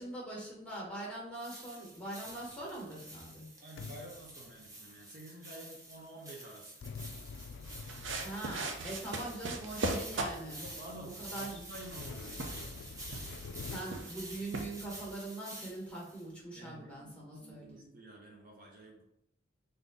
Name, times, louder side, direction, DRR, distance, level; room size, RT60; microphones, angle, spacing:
voice 1, 0.0-3.5 8.2-10.7 11.0-11.6 13.6-17.9, right 2 dB, 5° left, -4 dB, 1.3 m, -42 dB
sound 1, 1.3-16.2, right 1 dB, 15° right, 0.7 m, -49 dB
sound 2, 2.2-2.9 3.8-5.0 6.8-8.9 9.7-9.8 10.3-10.4 10.6-11.0 11.8-13.8, left 5 dB, 70° left, 0.3 m, -47 dB
voice 2, 3.6-6.8 10.5-12.6 16.5-19.0, right 1 dB, 45° right, -1 dB, 0.7 m, -50 dB
sound 3, 7.6-15.1, right 2 dB, 80° right, 0.6 m, -41 dB
3.8 x 2.7 x 3.6 m, 0.75 s
head